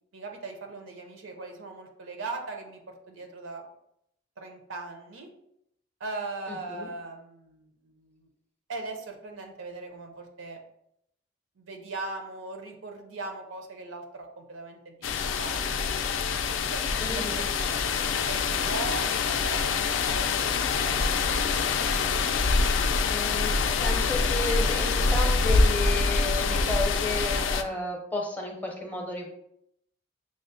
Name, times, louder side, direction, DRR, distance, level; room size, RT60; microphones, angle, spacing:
voice 1, 0.1-3.6 4.4-5.3 6.0-8.3 8.7-10.6 11.6-15.6 16.6-21.9 22.2-22.5, right 3 dB, 85° right, 4 dB, 0.7 m, -40 dB
voice 2, 6.5-6.9 17.0-17.4 23.1-23.5 23.8-29.3, left 2 dB, 10° left, 1 dB, 0.5 m, -32 dB
sound 1, 15.0-27.6, left 4 dB, 75° left, 0.3 m, -25 dB
6.1 x 2.1 x 2.6 m, 0.78 s
head